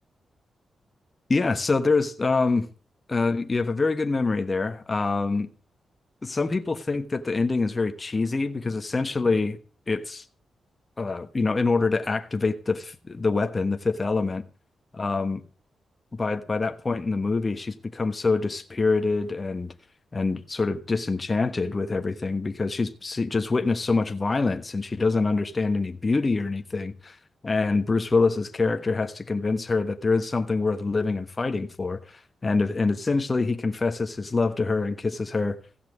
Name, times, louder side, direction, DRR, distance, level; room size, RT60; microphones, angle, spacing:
voice 1, 1.3-2.7 3.1-5.5 6.2-9.6 9.9-10.2 11.0-14.4 14.9-15.4 16.1-19.7 20.1-27.2 27.4-35.6, left 3 dB, 30° left, 1.2 m, -25 dB
16.0 x 5.9 x 8.4 m
cardioid pair, 80°, 0 cm